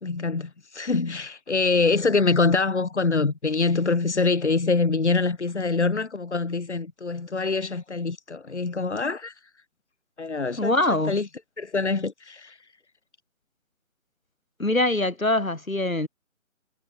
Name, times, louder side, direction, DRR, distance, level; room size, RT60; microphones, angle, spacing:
voice 1, 0.0-9.3 10.2-11.3 11.6-12.6, left 4 dB, 55° left, 3.0 m, -25 dB
voice 2, 10.6-11.2 14.6-16.1, left 2 dB, 80° left, 3.8 m, -23 dB
figure-of-eight pair, 155°, 40 cm